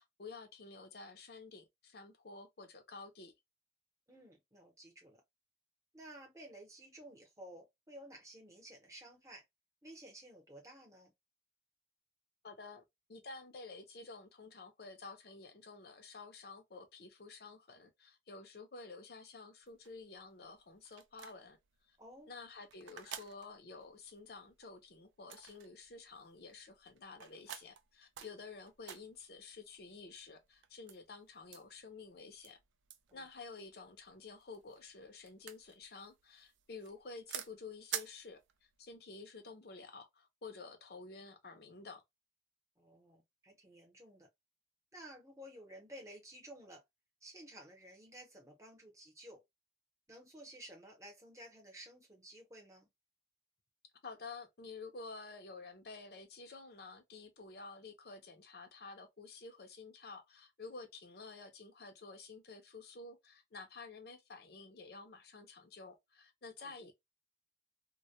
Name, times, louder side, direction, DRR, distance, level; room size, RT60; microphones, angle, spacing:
voice 1, 0.0-3.3 12.4-12.8 13.1-21.6 21.9-22.0 22.3-32.6 33.1-38.4 38.8-42.0 54.0-66.9, left 4 dB, 55° left, 0.6 m, -51 dB
voice 2, 4.1-5.2 5.9-9.4 9.8-11.1 22.0-22.3 33.1-33.3 42.8-44.3 44.9-46.8 47.2-49.4 50.1-52.9 66.6-66.9, right 1 dB, 15° right, 0.8 m, -54 dB
sound 1, 19.7-38.9, right 10 dB, 90° right, 0.4 m, -50 dB
2.2 x 2.2 x 2.7 m
head